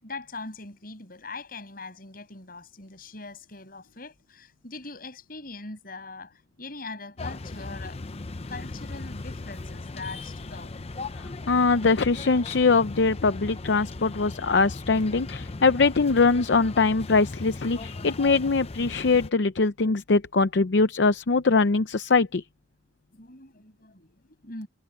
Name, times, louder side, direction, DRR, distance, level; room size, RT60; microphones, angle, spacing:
voice 1, 0.0-8.0 8.5-10.7 23.1-24.1 24.4-24.7, left 3 dB, 55° left, 7.7 m, -41 dB
sound 1, 7.2-19.3, left 3 dB, 35° left, 0.7 m, -38 dB
voice 2, 11.5-22.4, left 4 dB, 75° left, 0.6 m, -22 dB
head